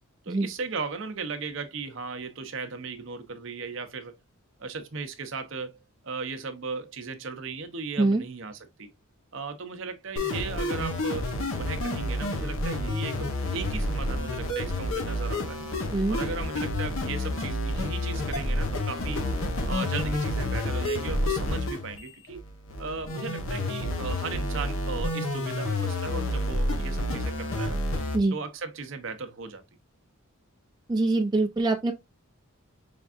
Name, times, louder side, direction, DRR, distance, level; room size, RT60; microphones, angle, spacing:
voice 1, 0.3-4.1 4.6-5.7 6.0-8.9 9.3-11.3 11.6-15.7 16.1-19.3 19.7-22.4 22.8-27.8 28.3-29.6, right 4 dB, 55° right, 0.7 m, -36 dB
sound 1, 10.2-28.2, left 1 dB, 65° left, 1.1 m, -29 dB
voice 2, 30.9-31.9, right 2 dB, 20° right, 0.4 m, -24 dB
5.2 x 3.5 x 2.4 m
head